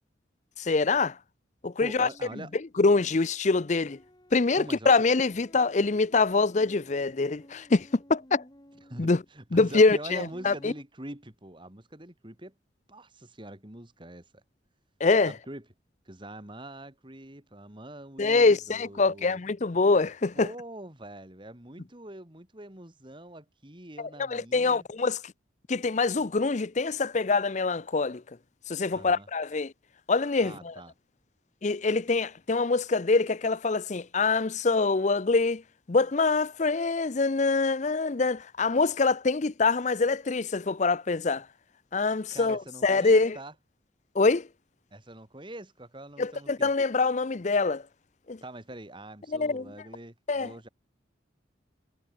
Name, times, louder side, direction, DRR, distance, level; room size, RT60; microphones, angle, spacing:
voice 1, 0.6-1.2 1.6-2.1 2.8-4.0 4.3-8.4 9.0-9.2 9.5-10.7 15.0-15.3 18.2-20.5 24.0-25.2 25.7-28.2 28.7-29.7 30.1-30.7 31.6-35.6 35.9-41.5 41.9-43.4 44.1-44.5 46.2-47.8 48.3-48.4 49.3-49.6 50.3-50.5, left 3 dB, 40° left, 0.6 m, -25 dB
voice 2, 1.8-2.5 4.5-4.9 8.9-12.5 12.9-14.3 15.3-15.7 16.1-19.4 20.3-24.9 28.9-29.3 30.4-30.9 42.3-43.5 44.9-46.7 48.4-50.7, right 1 dB, 25° right, 2.6 m, -44 dB
sound 1, 1.9-10.8, equal, 20° left, 4.2 m, -55 dB
head